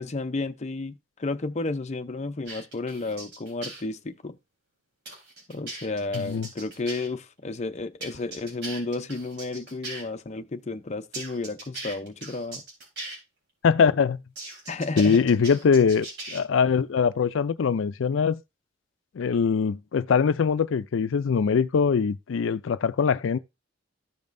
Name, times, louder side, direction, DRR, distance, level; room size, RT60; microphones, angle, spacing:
voice 1, 0.0-4.4 5.5-12.6 14.7-15.3, left 3 dB, 35° left, 0.6 m, -32 dB
sound 1, 2.5-3.8 5.1-7.1 8.0-10.0 11.1-13.2 14.4-16.4, right 2 dB, 60° right, 3.8 m, -39 dB
voice 2, 6.1-6.5 13.6-14.2 15.0-18.4 19.2-23.4, left 6 dB, 80° left, 0.4 m, -22 dB
14.0 x 5.3 x 2.6 m
head